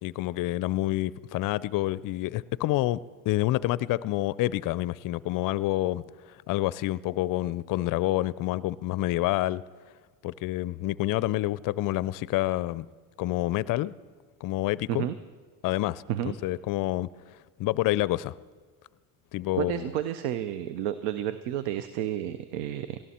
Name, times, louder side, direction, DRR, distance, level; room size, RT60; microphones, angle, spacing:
voice 1, 0.0-3.0 3.3-6.0 6.5-9.6 10.2-12.9 13.2-13.9 14.4-15.1 15.6-16.0 16.4-17.1 17.6-18.3 19.3-19.8, left 16 dB, 50° left, 0.5 m, -28 dB
voice 2, 19.6-23.0, right 11 dB, 70° right, 0.7 m, -31 dB
18.0 x 13.5 x 4.3 m
supercardioid pair, 75°, 43 cm